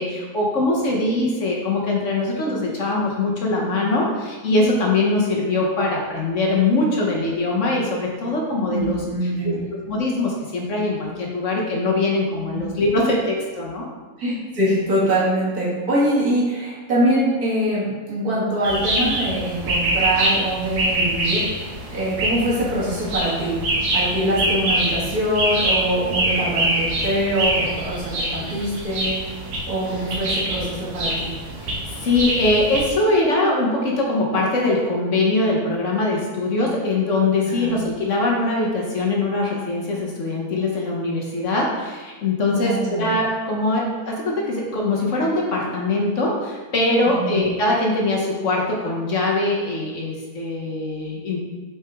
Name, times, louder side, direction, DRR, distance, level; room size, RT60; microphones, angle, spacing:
voice 1, 0.0-9.5 9.9-13.9 31.6-51.4, left 2 dB, 55° left, -2 dB, 1.2 m, -22 dB
voice 2, 8.7-9.6 12.5-12.6 14.2-21.6 21.9-23.5 23.9-29.2 29.7-31.3 37.4-37.7 42.5-43.1 47.1-47.4, right 1 dB, 70° right, -7 dB, 2.4 m, -23 dB
sound 1, 18.6-32.8, right 1 dB, 90° right, 1.6 m, -24 dB
6.0 x 5.0 x 3.5 m, 1.3 s
omnidirectional pair, 1.7 m